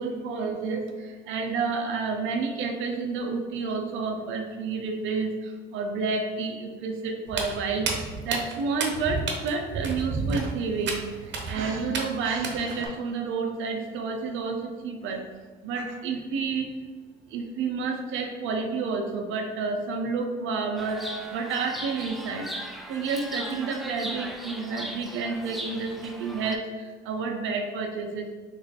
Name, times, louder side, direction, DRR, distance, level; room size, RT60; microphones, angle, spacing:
voice 1, 0.0-5.3 5.7-11.0 11.5-15.2 15.6-16.7 17.3-21.1 21.3-22.4 22.9-26.6 27.0-28.3, right 4 dB, 90° right, 3 dB, 0.5 m, -30 dB
Walk footsteps, 7.3-12.9, right 4 dB, 65° right, 0.8 m, -32 dB
Chirp tweet, 20.8-26.6, right 1 dB, ahead, 0.4 m, -38 dB
3.1 x 2.9 x 4.0 m, 1.4 s
cardioid pair, 90°, 20 cm